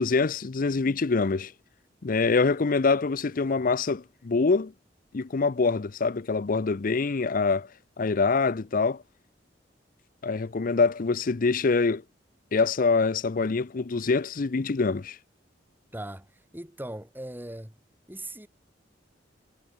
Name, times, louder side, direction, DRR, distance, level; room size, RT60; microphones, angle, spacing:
voice 1, 0.0-1.5 2.0-4.7 5.1-7.7 8.0-9.0 10.2-12.0 12.5-15.2, left 4 dB, 50° left, 0.6 m, -25 dB
voice 2, 15.9-17.8 18.1-18.5, right 1 dB, 10° right, 4.4 m, -39 dB
head